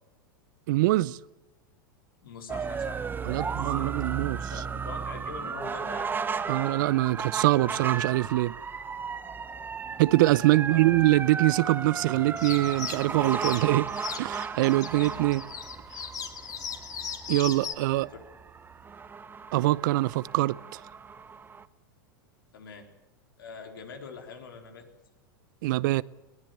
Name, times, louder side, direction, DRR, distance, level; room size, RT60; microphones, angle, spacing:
voice 1, 0.7-1.2 3.2-4.4 6.5-8.5 10.0-13.9 14.2-15.4 17.3-18.1 19.5-20.8 25.6-26.0, right 18 dB, 65° right, 0.7 m, -24 dB
voice 2, 2.2-4.0 4.5-6.1 10.6-10.9 22.5-22.9 23.4-24.9, left 5 dB, 80° left, 4.2 m, -44 dB
sound 1, 2.5-21.6, right 6 dB, 15° right, 1.1 m, -35 dB
sound 2, 12.4-17.7, left 7 dB, 30° left, 2.7 m, -38 dB
20.5 x 19.0 x 8.1 m
hypercardioid pair, 110°, 11 cm